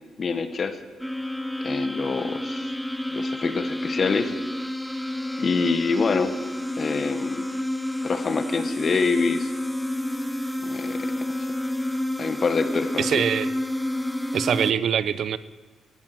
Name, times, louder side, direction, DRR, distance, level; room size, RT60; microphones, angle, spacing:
voice 1, 0.2-0.8 1.6-2.7 3.1-4.3 5.4-6.3 6.8-7.4 8.0-9.5 10.6-11.1 12.2-13.2, left 4 dB, 45° left, 10 dB, 1.3 m, -26 dB
sound 1, 1.0-14.7, left 1 dB, ahead, 0.6 m, -29 dB
voice 2, 13.0-13.5 14.3-15.4, right 8 dB, 60° right, 16 dB, 0.6 m, -23 dB
15.0 x 9.1 x 7.7 m, 1.3 s
cardioid pair, 90°, 0 cm